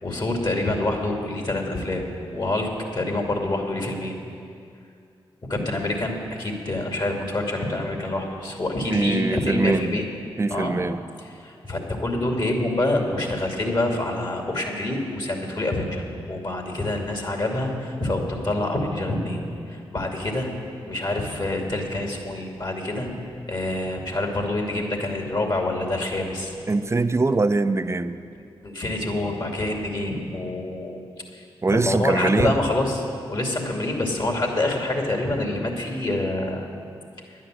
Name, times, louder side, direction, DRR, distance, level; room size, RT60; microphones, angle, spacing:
voice 1, 0.0-2.0 2.3-4.2 5.5-10.0 10.5-10.8 11.4-19.4 19.7-20.5 20.9-23.1 23.5-26.5 28.3-31.0 31.7-33.0 33.3-36.7, left 2 dB, 45° left, 2 dB, 2.6 m, -26 dB
voice 2, 8.9-10.0 10.4-11.0 26.7-28.2 31.6-32.6, right 3 dB, 30° right, 11 dB, 0.6 m, -22 dB
10.5 x 9.4 x 7.6 m, 2.4 s
supercardioid pair, 40°, 10 cm